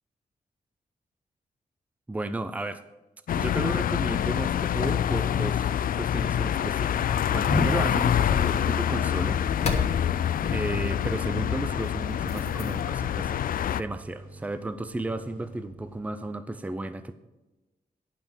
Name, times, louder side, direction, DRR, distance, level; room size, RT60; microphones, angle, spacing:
voice 1, 2.1-2.8 3.3-5.7 5.9-9.4 10.5-13.4 13.7-17.1, right 2 dB, 10° right, 11 dB, 0.5 m, -33 dB
sound 1, 3.3-13.8, left 10 dB, 65° left, 0.4 m, -26 dB
sound 2, 5.8-16.0, right 2 dB, 65° right, 3.1 m, -47 dB
sound 3, 6.3-13.1, left 3 dB, 45° left, 1.5 m, -35 dB
10.5 x 5.8 x 6.8 m, 1.1 s
wide cardioid pair, 150°, 15 cm